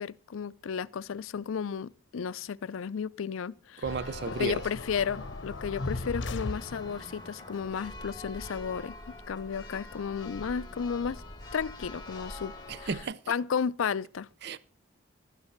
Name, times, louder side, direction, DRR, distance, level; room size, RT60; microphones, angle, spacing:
voice 1, 0.0-3.8 4.3-11.2 11.5-12.5 12.8-12.9 13.3-14.3, left 6 dB, 80° left, 0.4 m, -33 dB
sound 1, 3.8-7.2, left 2 dB, 60° left, 0.9 m, -37 dB
Church bell, 3.8-13.0, left 2 dB, 20° left, 1.8 m, -45 dB
voice 2, 3.8-4.6 12.7-13.3 14.4-14.6, right 4 dB, 50° right, 0.4 m, -34 dB
12.5 x 9.7 x 4.4 m
head